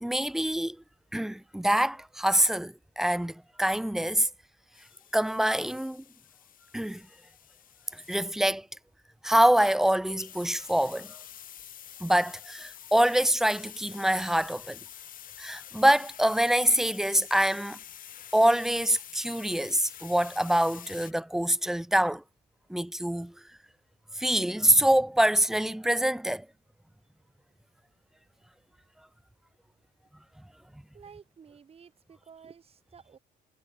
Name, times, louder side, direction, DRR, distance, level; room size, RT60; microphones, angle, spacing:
voice 1, 0.0-0.8 1.1-4.3 5.1-6.0 6.7-7.0 7.9-8.7 9.2-11.2 12.0-14.8 15.4-17.8 18.3-22.2 22.7-23.3 24.2-26.5, right 1 dB, ahead, 0.4 m, -25 dB
sound 1, 4.7-8.3 10.2-21.1, left 10 dB, 55° left, 4.9 m, -47 dB
voice 2, 30.9-33.2, right 6 dB, 35° right, 2.8 m, -52 dB
cardioid pair, 110°, 17 cm